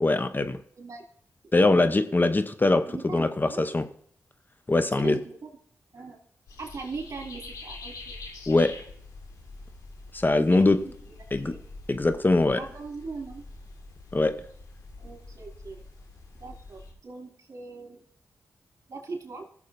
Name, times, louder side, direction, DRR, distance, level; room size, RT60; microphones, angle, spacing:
voice 1, 0.0-0.6 1.5-2.8 3.1-3.9 4.7-5.2 8.5-8.7 10.1-10.8 11.3-11.5 11.9-12.6 14.1-14.3, left 2 dB, 30° left, 9 dB, 0.8 m, -22 dB
voice 2, 2.9-3.6 5.0-5.5 5.9-6.2 6.6-8.2 10.4-11.6 12.4-13.4 15.0-15.8 16.4-18.0 18.9-19.5, right 4 dB, 65° right, 0 dB, 3.1 m, -40 dB
sound 1, 6.5-16.9, left 3 dB, 85° left, 2.1 m, -45 dB
17.5 x 7.2 x 2.7 m, 0.62 s
supercardioid pair, 40°, 6 cm